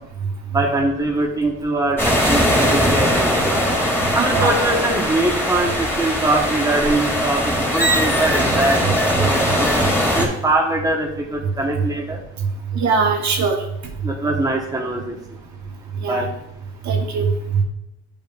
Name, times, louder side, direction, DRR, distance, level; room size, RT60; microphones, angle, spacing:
voice 1, 0.5-3.6 4.1-9.8 10.1-12.2 14.0-15.2 16.0-16.3, right 2 dB, 10° right, 0 dB, 1.2 m, -22 dB
sound 1, 2.0-10.3, equal, 10° left, 1.8 m, -20 dB
voice 2, 4.2-4.5 12.7-13.6 16.0-16.2 16.9-17.6, right 5 dB, 65° right, 0 dB, 1.2 m, -20 dB
8.8 x 5.3 x 2.5 m, 0.87 s
cardioid pair, 90°, 30 cm